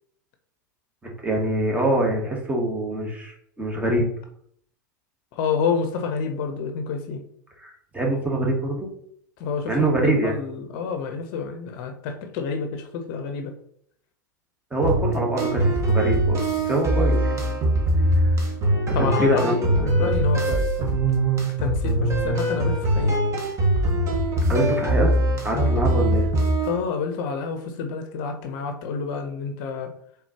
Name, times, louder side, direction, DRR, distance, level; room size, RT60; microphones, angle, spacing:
voice 1, 1.2-4.1 7.6-8.9 9.7-10.3 14.7-16.4 16.6-17.2 18.1-18.3 18.9-20.1 24.5-25.1 25.4-26.3, right 1 dB, 15° right, 0 dB, 1.3 m, -24 dB
voice 2, 5.3-7.2 9.4-13.5 18.9-21.0 21.6-23.2 25.5-25.8 26.6-29.9, left 5 dB, 50° left, 6 dB, 0.6 m, -29 dB
sound 1, 14.8-26.8, right 1 dB, 30° right, 1.1 m, -22 dB
4.2 x 3.5 x 2.9 m, 0.67 s
figure-of-eight pair, 85°, 10 cm